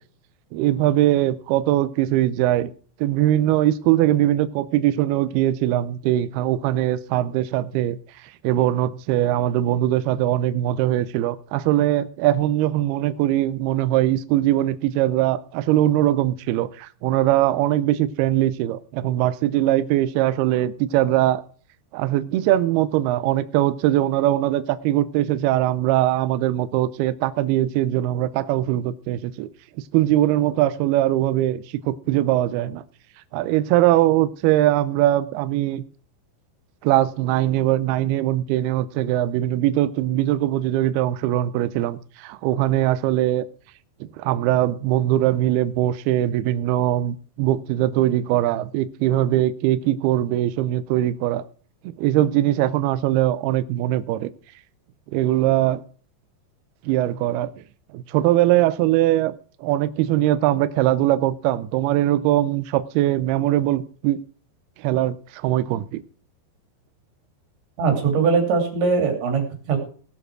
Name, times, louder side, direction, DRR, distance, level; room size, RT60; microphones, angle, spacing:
voice 1, 0.5-2.7 3.0-21.4 21.9-29.5 29.9-32.8 33.3-35.8 36.8-43.5 44.0-51.4 51.8-54.3 55.1-55.8 56.8-57.6 57.9-64.2 64.8-66.0, right 14 dB, 90° right, 2.2 m, -21 dB
voice 2, 67.8-69.8, right 5 dB, 70° right, 5.1 m, -21 dB
17.0 x 6.8 x 6.2 m
omnidirectional pair, 5.4 m